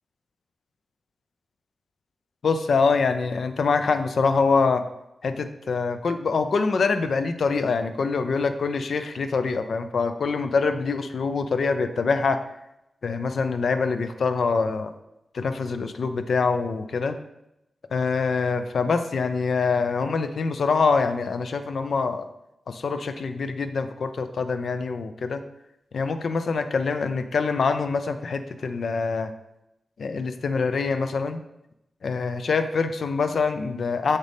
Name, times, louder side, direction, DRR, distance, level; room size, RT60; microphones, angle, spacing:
voice 1, 2.4-4.9 5.2-12.4 13.0-14.9 15.3-17.2 17.9-22.3 22.7-25.4 25.9-29.3 30.0-31.4 32.0-34.2, left 4 dB, 75° left, 9 dB, 0.6 m, -25 dB
7.6 x 6.5 x 3.5 m, 0.88 s
wide cardioid pair, 110°, 0 cm